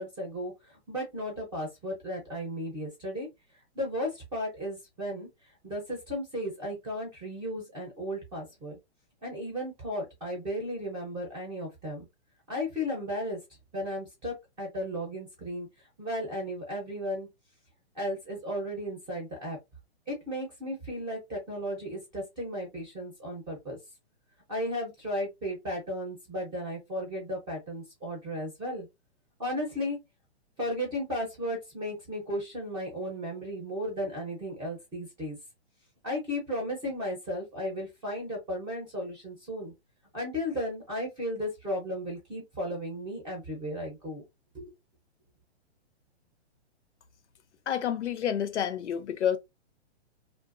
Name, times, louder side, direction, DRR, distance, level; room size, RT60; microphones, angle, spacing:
voice 1, 0.0-3.3 3.7-5.3 5.6-8.8 9.2-12.1 12.5-13.4 13.7-15.7 16.0-17.3 17.9-19.6 20.1-23.8 24.5-28.9 29.4-30.0 30.6-35.4 36.0-39.7 40.1-44.2 44.5-44.7, equal, 15° right, 0.7 m, -35 dB
voice 2, 47.7-49.4, left 9 dB, 85° left, 0.7 m, -29 dB
2.5 x 2.1 x 2.4 m
hypercardioid pair, 150°, 34 cm